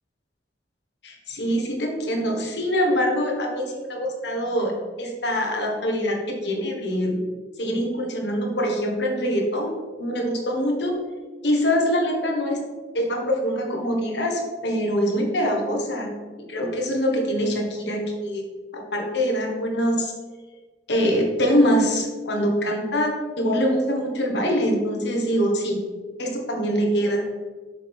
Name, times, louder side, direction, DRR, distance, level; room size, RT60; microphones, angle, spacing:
voice 1, 1.0-7.2 7.6-9.7 10.0-10.9 11.4-12.6 12.9-16.1 16.5-18.4 18.7-20.1 20.9-25.8 26.2-27.2, equal, 65° left, 1 dB, 1.5 m, -24 dB
7.6 x 6.5 x 3.6 m, 1.4 s
head